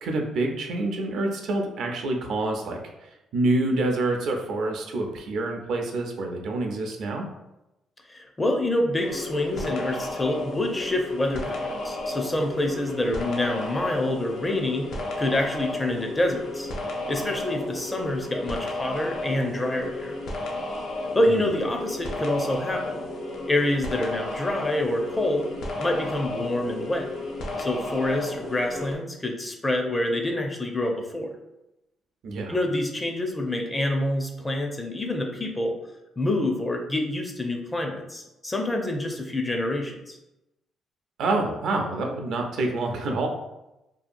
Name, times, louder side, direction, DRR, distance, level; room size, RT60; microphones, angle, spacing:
voice 1, 0.0-7.3 21.2-21.4 32.2-32.5 41.2-43.3, right 2 dB, 75° right, 2 dB, 0.5 m, -27 dB
voice 2, 8.1-14.9 15.2-16.7 17.1-20.2 21.1-23.0 23.5-25.5 25.8-27.1 27.6-31.3 32.5-35.7 36.2-40.2, left 1 dB, 20° left, 3 dB, 0.4 m, -27 dB
sound 1, 9.0-28.9, left 2 dB, 75° left, 0.5 m, -33 dB
2.7 x 2.3 x 2.5 m, 0.92 s
cardioid pair, 90°, 0 cm